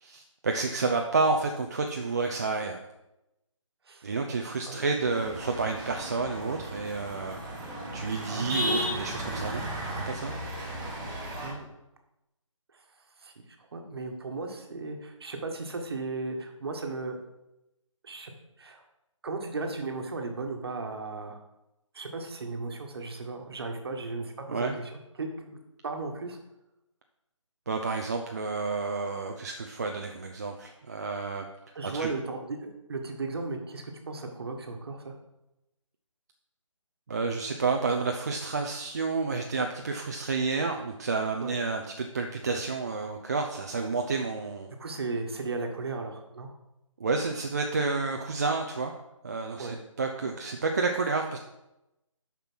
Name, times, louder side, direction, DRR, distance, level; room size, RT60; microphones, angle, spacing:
voice 1, 0.0-2.8 4.0-7.4 7.9-9.7 10.1-10.3 24.5-24.7 27.7-31.5 31.9-32.1 37.1-44.7 47.0-48.9 49.2-51.4, right 4 dB, 30° right, 3 dB, 0.5 m, -30 dB
sound 1, 5.0-11.5, equal, 15° right, 1.4 m, -35 dB
voice 2, 8.3-8.7 11.4-11.7 13.2-13.3 13.6-17.2 18.0-18.3 18.6-18.8 19.2-21.4 21.9-24.9 25.2-26.4 31.7-35.1 41.4-41.6 44.8-46.5 49.6-49.7, right 3 dB, 50° right, 4 dB, 1.4 m, -36 dB
7.0 x 5.8 x 6.0 m, 0.93 s
figure-of-eight pair, 165°, 17 cm